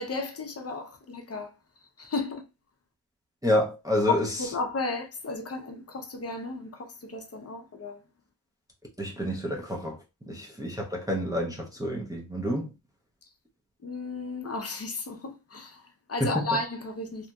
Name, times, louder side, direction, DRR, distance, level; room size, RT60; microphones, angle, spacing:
voice 1, 0.0-1.5 2.0-2.4 4.1-8.0 10.2-10.4 13.8-17.3, left 3 dB, 35° left, 0.6 m, -34 dB
voice 2, 3.4-4.4 9.0-10.0 10.3-12.7 16.2-16.4, left 1 dB, 10° right, 0.5 m, -28 dB
2.9 x 2.5 x 2.2 m
wide cardioid pair, 105°, 43 cm